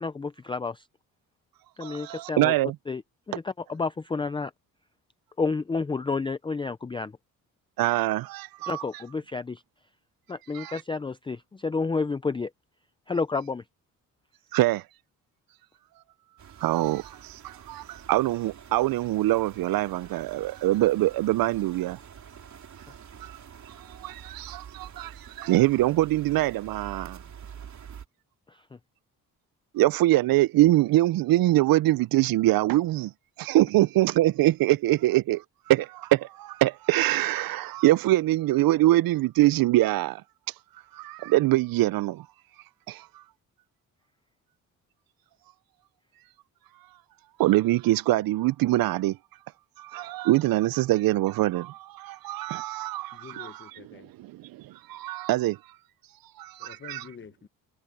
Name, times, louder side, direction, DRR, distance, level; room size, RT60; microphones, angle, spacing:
voice 1, 0.0-0.9 1.8-2.5 2.9-3.0 3.3-4.5 5.4-7.1 8.7-9.6 10.3-12.5 13.1-13.6 28.5-28.8, left 4 dB, 15° left, 0.4 m, -30 dB
voice 2, 1.8-2.8 7.8-8.8 10.5-10.7 14.5-14.8 16.6-22.0 23.2-23.4 24.0-27.2 29.7-33.1 33.4-40.2 40.9-42.3 42.9-43.1 47.4-49.2 49.8-53.6 54.2-55.6 56.4-57.0, right 16 dB, 75° right, 0.5 m, -24 dB
sound 1, 16.4-28.1, right 8 dB, 50° right, 3.2 m, -47 dB
voice 3, 53.1-54.1 56.6-57.5, left 6 dB, 35° left, 1.0 m, -46 dB
cardioid pair, 145°, 35 cm